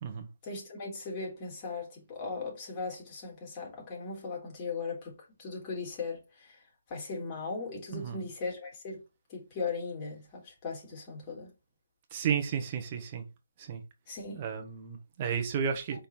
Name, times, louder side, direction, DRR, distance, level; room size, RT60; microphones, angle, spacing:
voice 1, 0.4-5.1 5.4-6.6 6.9-9.0 9.3-11.5 14.1-14.4, left 4 dB, 25° left, 3.7 m, -38 dB
voice 2, 7.9-8.2 12.1-13.2 13.6-13.8 14.3-16.1, right 7 dB, 30° right, 1.4 m, -33 dB
5.3 x 4.3 x 4.4 m
hypercardioid pair, 160°, 0 cm